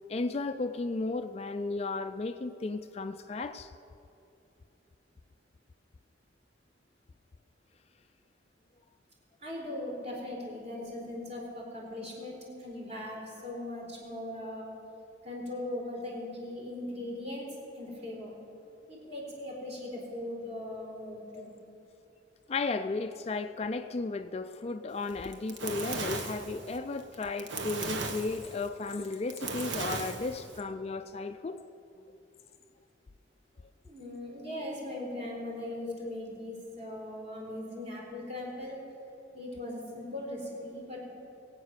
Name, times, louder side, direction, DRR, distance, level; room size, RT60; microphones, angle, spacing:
voice 1, 0.1-3.7 21.3-21.5 22.5-31.6, left 3 dB, 30° left, 9 dB, 0.3 m, -34 dB
voice 2, 9.4-14.7 15.2-17.5 17.7-18.4 18.9-21.6 33.8-38.8 39.3-41.0, left 1 dB, 35° right, -3 dB, 4.0 m, -39 dB
Fire, 25.1-30.6, right 3 dB, 75° right, 1.4 m, -37 dB
21.0 x 8.9 x 6.6 m, 2.9 s
head